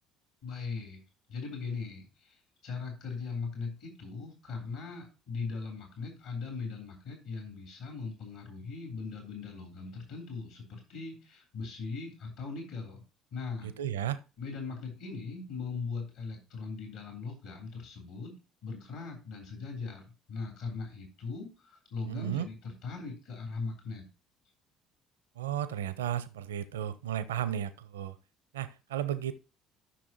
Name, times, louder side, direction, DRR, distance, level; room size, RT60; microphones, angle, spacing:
voice 1, 0.4-1.0 1.3-13.0 13.3-13.7 14.4-18.3 18.6-24.0, left 4 dB, 65° left, 3.4 m, -39 dB
voice 2, 13.6-14.2 22.0-22.5 25.4-28.1 28.5-29.3, right 10 dB, 75° right, 0.6 m, -34 dB
14.0 x 6.4 x 2.9 m
figure-of-eight pair, 55°, 0 cm